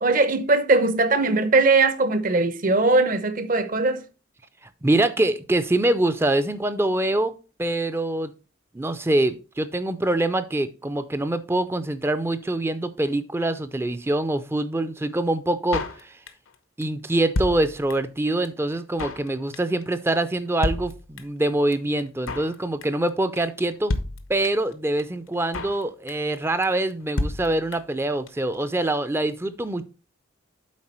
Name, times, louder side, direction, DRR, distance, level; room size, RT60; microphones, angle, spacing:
voice 1, 0.0-4.0, right 3 dB, 40° right, 0.7 m, -20 dB
voice 2, 4.8-8.3 8.7-16.2 16.8-23.9 24.3-29.8, right 1 dB, 10° right, 0.4 m, -24 dB
Drum kit, 15.7-16.5 16.8-16.9 17.1-18.2 18.4-18.5 18.7-19.3 19.5-19.8 20.1-20.2 20.4-20.5 20.6-21.5 21.7-21.8 22.0-22.6 22.8-23.1 23.4-23.5 23.6-23.7 23.9-24.7 25.0-25.1 25.3-25.8 26.1-26.4 26.6-26.7 26.9-27.0 27.2-28.0 28.3-28.4 28.5-28.6, left 2 dB, 80° left, 0.8 m, -30 dB
7.4 x 4.7 x 4.3 m
head